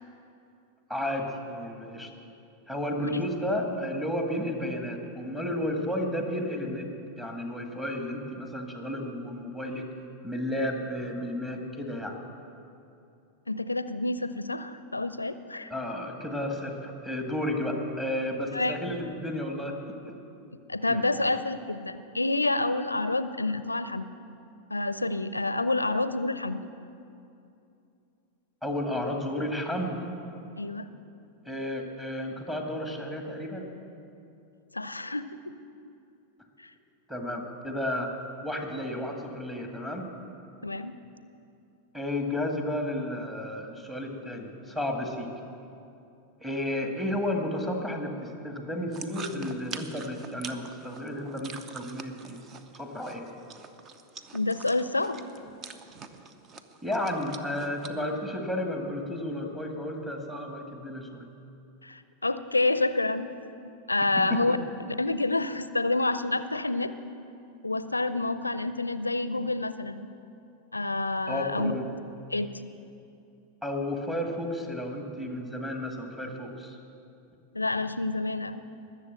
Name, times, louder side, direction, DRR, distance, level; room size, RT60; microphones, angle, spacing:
voice 1, 0.9-2.1 2.7-6.9 7.2-9.9 10.2-12.2 15.7-20.1 20.9-21.3 28.6-30.0 31.5-33.7 37.1-40.1 41.9-45.3 46.4-52.4 52.8-53.3 56.8-61.3 64.2-64.6 71.3-71.9 73.6-76.8, left 1 dB, 10° right, 2 dB, 2.0 m, -32 dB
voice 2, 13.5-15.7 18.5-18.8 20.7-24.1 24.7-26.6 30.6-30.9 34.7-35.5 36.6-36.7 40.6-41.0 54.3-55.2 61.8-63.3 63.9-64.6 65.0-66.9 67.6-70.0 70.7-71.7 72.3-72.5 77.5-78.6, left 2 dB, 80° left, 13 dB, 0.5 m, -28 dB
sound 1, 48.9-57.9, right 5 dB, 30° right, 0.8 m, -45 dB
21.0 x 7.4 x 7.6 m, 2.7 s
figure-of-eight pair, 90°, 0 cm